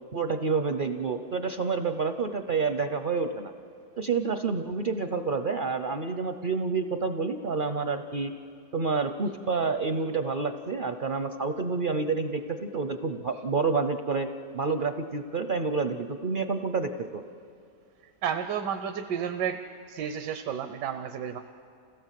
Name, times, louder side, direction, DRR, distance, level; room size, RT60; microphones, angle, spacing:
voice 1, 0.1-3.5 4.0-8.3 8.7-14.3 14.5-17.2, right 4 dB, 55° right, 8 dB, 0.5 m, -28 dB
voice 2, 18.2-19.6 19.9-21.4, right 8 dB, 85° right, 7 dB, 1.4 m, -31 dB
28.0 x 16.5 x 7.5 m, 2.4 s
omnidirectional pair, 1.8 m